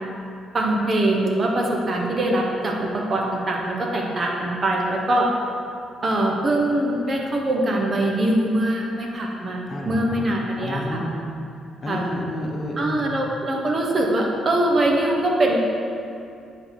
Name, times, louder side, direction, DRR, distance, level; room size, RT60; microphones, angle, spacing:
voice 1, 0.5-5.3 6.0-9.6 9.9-11.0 11.9-12.1 12.8-15.6, right 1 dB, 40° right, 0 dB, 1.1 m, -22 dB
voice 2, 9.7-10.3 10.6-11.3 11.8-13.1, left 1 dB, 45° left, 1 dB, 0.9 m, -30 dB
9.9 x 3.9 x 4.0 m, 2.5 s
cardioid pair, 90°, 0 cm